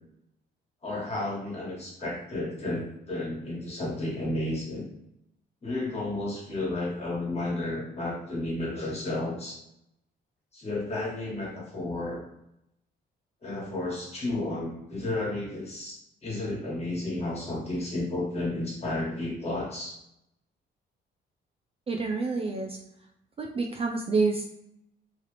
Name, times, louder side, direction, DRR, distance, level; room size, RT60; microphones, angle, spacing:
voice 1, 0.8-4.8 5.6-9.6 10.5-12.2 13.4-20.0, left 2 dB, 30° left, -4 dB, 1.5 m, -32 dB
voice 2, 21.9-22.8 23.4-24.5, right 4 dB, 30° right, 2 dB, 0.4 m, -28 dB
3.0 x 2.4 x 3.2 m, 0.80 s
cardioid pair, 90°, 20 cm